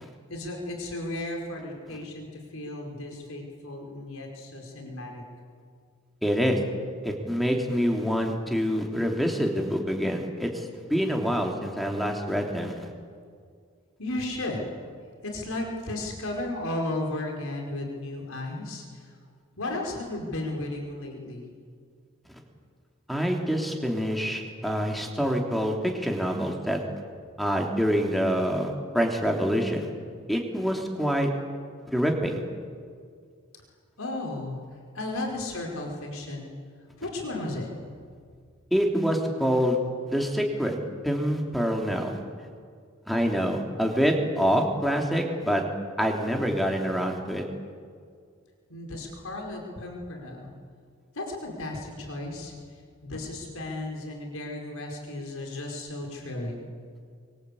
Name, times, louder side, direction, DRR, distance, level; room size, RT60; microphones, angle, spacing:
voice 1, 0.0-5.2 14.0-14.7 15.2-19.1 19.6-21.5 34.0-34.6 34.9-36.5 37.0-37.7 48.7-50.5 51.1-56.6, left 2 dB, 90° left, 1 dB, 5.1 m, -34 dB
voice 2, 6.2-6.6 7.0-12.9 23.1-26.8 27.4-29.9 30.3-31.3 31.9-32.4 38.7-39.8 40.1-40.8 41.0-42.2 43.1-45.6 46.0-47.4, equal, ahead, 1 dB, 3.2 m, -26 dB
26.5 x 24.5 x 8.6 m, 2.1 s
head